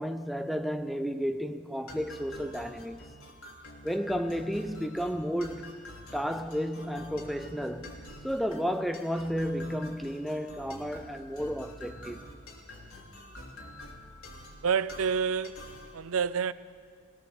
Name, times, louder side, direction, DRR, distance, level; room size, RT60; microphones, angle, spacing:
voice 1, 0.0-3.1 3.8-5.7 6.1-8.0 8.2-12.2, equal, ahead, 0.5 m, -32 dB
sound 1, 1.9-15.9, left 1 dB, 90° left, 3.2 m, -47 dB
voice 2, 14.6-15.7 15.9-16.5, right 6 dB, 85° right, 0.5 m, -28 dB
20.5 x 20.0 x 7.0 m
head